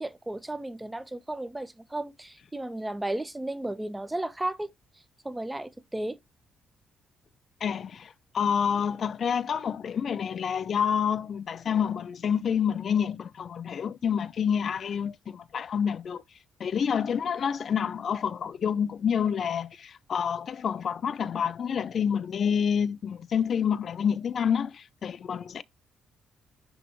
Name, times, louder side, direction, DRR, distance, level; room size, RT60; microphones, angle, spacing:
voice 1, 0.0-4.7 5.2-6.2, right 1 dB, 10° right, 1.0 m, -34 dB
voice 2, 7.6-16.2 16.6-25.6, left 7 dB, 55° left, 0.5 m, -28 dB
9.9 x 3.4 x 3.1 m
cardioid pair, 90°, 0 cm